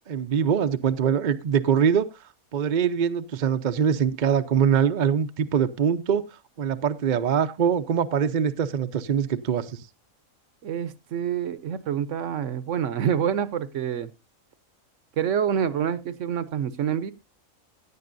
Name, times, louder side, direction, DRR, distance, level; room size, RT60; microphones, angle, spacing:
voice 1, 0.1-2.1 2.5-6.3 6.6-9.8, right 7 dB, 50° right, 0.6 m, -23 dB
voice 2, 10.6-14.1 15.2-17.1, right 8 dB, 65° right, 1.0 m, -27 dB
16.5 x 9.7 x 2.6 m
omnidirectional pair, 1.5 m